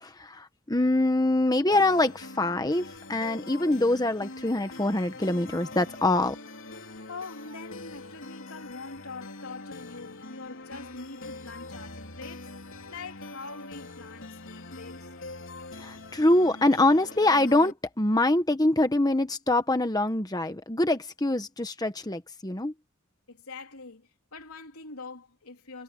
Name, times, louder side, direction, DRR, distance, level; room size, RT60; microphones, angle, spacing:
voice 1, 0.0-6.4 15.8-22.7, left 2 dB, 15° left, 1.1 m, -24 dB
sound 1, 1.7-17.7, left 2 dB, 60° left, 3.5 m, -43 dB
voice 2, 7.1-12.5 12.9-15.2 23.3-25.8, left 3 dB, 80° left, 3.8 m, -43 dB
head